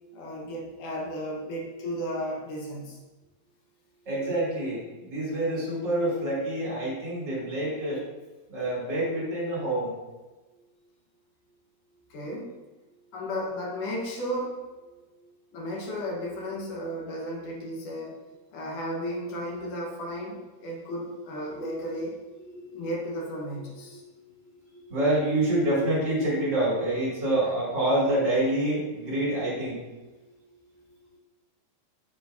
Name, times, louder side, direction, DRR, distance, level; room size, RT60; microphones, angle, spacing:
voice 1, 0.1-3.0 12.1-12.6 13.1-14.6 15.5-18.2 18.5-22.2 22.7-24.0, equal, 65° left, -2 dB, 2.2 m, -34 dB
voice 2, 4.1-8.0 8.5-9.9 21.5-21.7 22.7-22.8 23.9-24.0 24.8-29.8, right 1 dB, 30° right, -6 dB, 2.7 m, -27 dB
8.5 x 7.6 x 2.7 m, 1.2 s
omnidirectional pair, 4.9 m